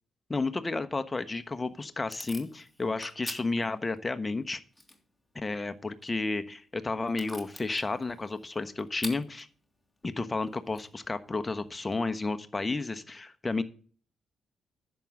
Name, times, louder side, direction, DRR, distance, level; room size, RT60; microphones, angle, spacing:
voice 1, 0.3-4.6 5.3-9.5 10.0-13.6, left 3 dB, 25° left, 10 dB, 1.2 m, -32 dB
Packing tape duct tape / Tearing, 1.2-12.0, left 1 dB, 5° left, 3.0 m, -49 dB
10.5 x 7.6 x 5.1 m, 0.42 s
hypercardioid pair, 45°, 0 cm